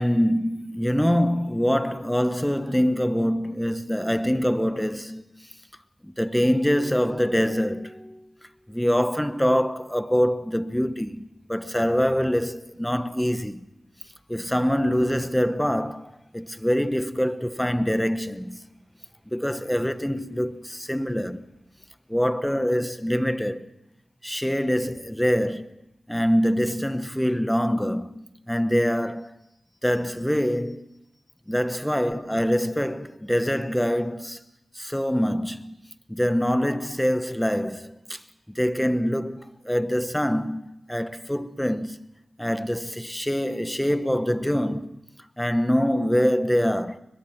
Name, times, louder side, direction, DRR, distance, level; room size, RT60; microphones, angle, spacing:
voice 1, 0.0-5.2 6.0-8.3 8.7-13.7 14.3-18.6 19.3-21.4 22.1-23.7 24.2-25.8 26.1-29.4 29.8-30.9 31.5-34.4 34.7-35.8 36.1-38.2 38.5-42.0 42.4-45.0 45.4-47.0, equal, 5° left, 1.1 m, -24 dB
22.0 x 21.0 x 5.9 m
cardioid pair, 65°, 0 cm